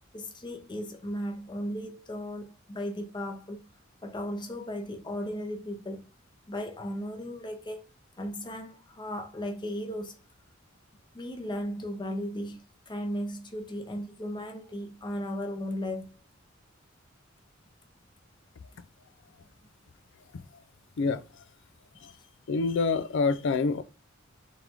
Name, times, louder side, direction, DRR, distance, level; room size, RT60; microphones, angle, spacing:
voice 1, 0.1-3.7 4.0-6.1 6.5-7.8 8.2-10.2 11.1-16.1, equal, 20° left, 0.8 m, -36 dB
voice 2, 22.5-23.8, left 4 dB, 65° left, 0.4 m, -26 dB
3.8 x 3.4 x 2.9 m
head